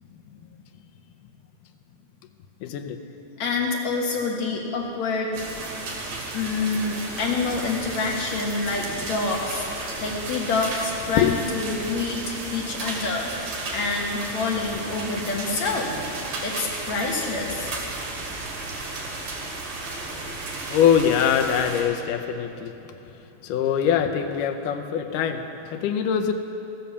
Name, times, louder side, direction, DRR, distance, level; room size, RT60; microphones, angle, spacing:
voice 1, 2.6-3.0 11.2-11.4 20.7-22.8 23.4-26.3, left 8 dB, 75° left, 7 dB, 2.0 m, -23 dB
voice 2, 3.4-5.3 6.3-15.9 16.4-17.7, left 3 dB, 60° left, -1 dB, 2.2 m, -27 dB
sound 1, 5.3-21.8, right 2 dB, 65° right, 3.5 m, -34 dB
14.0 x 10.5 x 6.9 m, 2.9 s
omnidirectional pair, 4.3 m